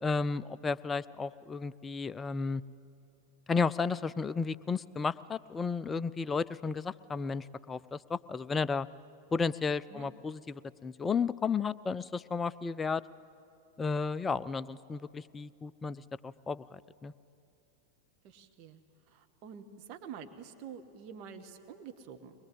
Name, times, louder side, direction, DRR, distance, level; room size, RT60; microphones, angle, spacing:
voice 1, 0.0-2.6 3.5-8.9 9.3-13.0 13.8-17.1, left 5 dB, 15° left, 17 dB, 0.4 m, -33 dB
voice 2, 18.2-18.8 19.1-22.3, right 7 dB, 40° right, 6 dB, 1.5 m, -47 dB
23.0 x 21.5 x 7.9 m, 2.6 s
figure-of-eight pair, 90°, 0 cm